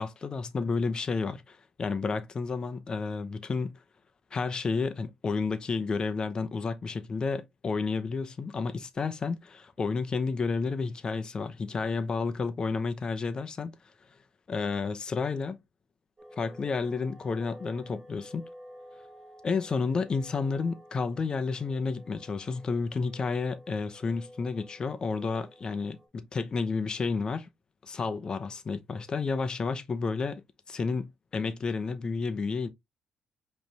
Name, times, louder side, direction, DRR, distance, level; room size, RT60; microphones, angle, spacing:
voice 1, 0.0-3.7 4.3-13.7 14.5-15.6 16.4-18.4 19.4-27.5 27.8-30.4 30.7-32.7, left 4 dB, 35° left, 0.7 m, -31 dB
sound 1, 16.2-26.1, equal, 20° right, 1.4 m, -51 dB
5.2 x 3.2 x 2.8 m
cardioid pair, 110°, 2 cm